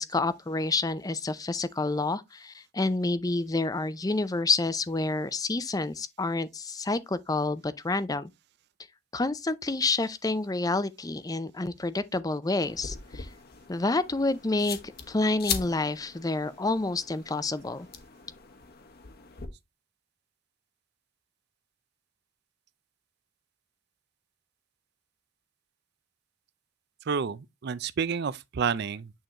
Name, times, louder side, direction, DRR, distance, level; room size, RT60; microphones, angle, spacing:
voice 1, 0.0-8.3 9.1-13.3 13.7-14.8 15.1-17.9, left 3 dB, 15° left, 0.5 m, -28 dB
sound 1, 12.6-19.5, left 7 dB, 50° left, 1.0 m, -40 dB
voice 2, 27.1-29.1, right 6 dB, 50° right, 0.4 m, -30 dB
8.8 x 3.9 x 2.9 m
head